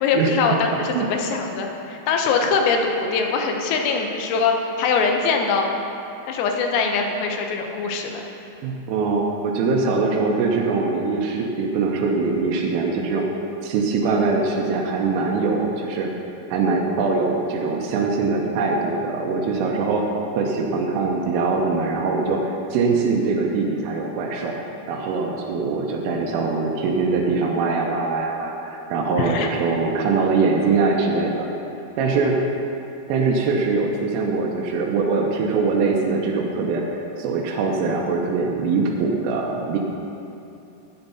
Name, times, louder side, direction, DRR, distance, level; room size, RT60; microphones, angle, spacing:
voice 1, 0.0-5.8 6.3-8.2 29.2-29.5, left 5 dB, 85° left, 3 dB, 3.5 m, -22 dB
voice 2, 8.6-13.2 13.6-16.1 16.5-20.0 20.4-24.5 24.9-31.5 32.0-32.4 33.1-39.8, right 4 dB, 90° right, -2 dB, 3.4 m, -22 dB
16.0 x 9.0 x 2.8 m, 2.8 s
omnidirectional pair, 5.8 m